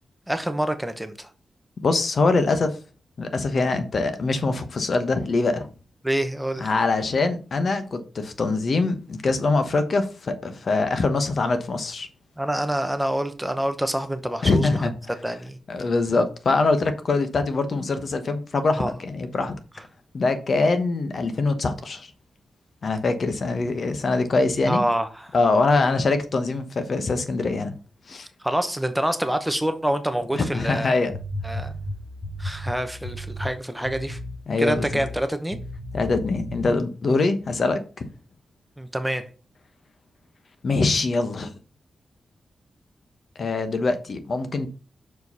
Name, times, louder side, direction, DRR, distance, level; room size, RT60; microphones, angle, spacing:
voice 1, 0.3-1.3 6.0-6.7 12.4-15.6 18.8-18.9 24.7-25.3 25.8-26.0 28.4-30.9 31.4-31.7 32.4-34.2 34.6-35.6 38.8-39.2, right 1 dB, 5° right, 0.8 m, -26 dB
voice 2, 1.8-2.8 3.2-5.7 6.6-12.1 14.4-14.9 15.7-19.6 20.1-22.1 22.8-24.8 25.3-27.7 28.1-28.3 30.3-31.1 34.5-35.0 35.9-38.0 40.6-41.5 43.4-44.7, left 3 dB, 50° left, 1.1 m, -23 dB
sound 1, 31.1-33.5 33.8-34.4 34.7-35.2 35.5-36.7, left 1 dB, 30° left, 3.3 m, -34 dB
6.3 x 5.0 x 5.4 m
wide cardioid pair, 130°, 0 cm